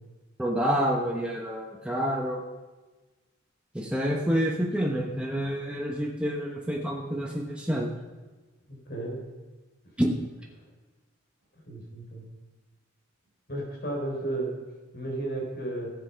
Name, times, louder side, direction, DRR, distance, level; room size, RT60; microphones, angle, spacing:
voice 1, 0.4-2.4 3.7-7.9 10.0-10.1, equal, 5° right, -2 dB, 0.9 m, -28 dB
voice 2, 8.7-9.2 11.5-12.2 13.5-14.5 14.9-15.9, right 2 dB, 50° left, 0 dB, 3.7 m, -33 dB
15.0 x 7.6 x 5.7 m, 1.2 s
head